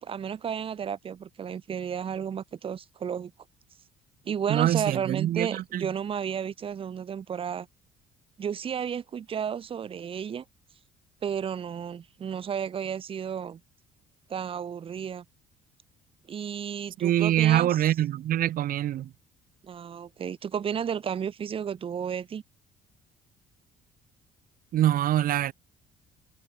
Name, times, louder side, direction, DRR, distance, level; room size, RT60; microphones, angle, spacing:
voice 1, 0.0-3.3 4.3-7.7 8.4-10.4 11.2-13.6 14.3-15.2 16.3-17.7 19.6-22.4, right 8 dB, 35° right, 0.6 m, -32 dB
voice 2, 4.5-5.9 17.0-19.1 24.7-25.5, right 12 dB, 60° right, 0.8 m, -24 dB
cardioid pair, 110°, 17 cm